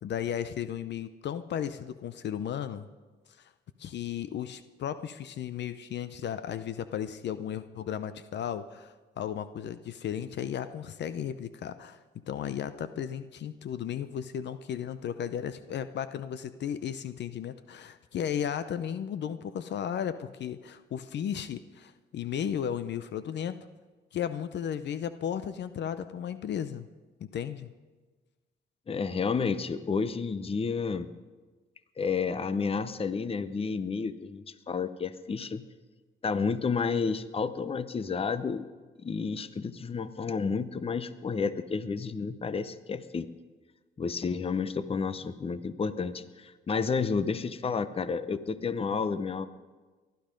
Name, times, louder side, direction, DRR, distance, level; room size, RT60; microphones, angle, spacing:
voice 1, 0.0-2.9 3.8-12.0 12.3-23.6 24.1-26.9 27.2-27.7, left 9 dB, 60° left, 12 dB, 0.7 m, -35 dB
voice 2, 28.9-31.1 32.0-35.6 36.2-38.7 39.0-43.3 44.0-49.5, left 5 dB, 30° left, 14 dB, 0.7 m, -31 dB
19.5 x 12.0 x 5.2 m, 1.3 s
cardioid pair, 90°, 20 cm